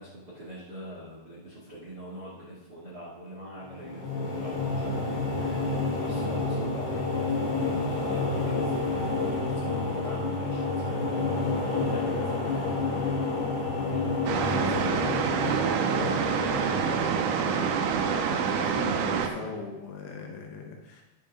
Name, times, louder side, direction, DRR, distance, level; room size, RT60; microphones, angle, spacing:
voice 1, 0.0-11.2 11.7-14.1 14.6-17.6 18.3-19.4 20.2-20.3, right 1 dB, 65° right, -6 dB, 0.9 m, -43 dB
sound 1, 3.7-19.0, left 3 dB, 40° left, 2.6 m, -30 dB
sound 2, 14.3-19.3, right 7 dB, 80° right, 2.9 m, -27 dB
voice 2, 18.6-21.0, left 4 dB, 75° left, 1 dB, 3.2 m, -39 dB
17.5 x 5.9 x 3.7 m, 1.0 s
omnidirectional pair, 5.9 m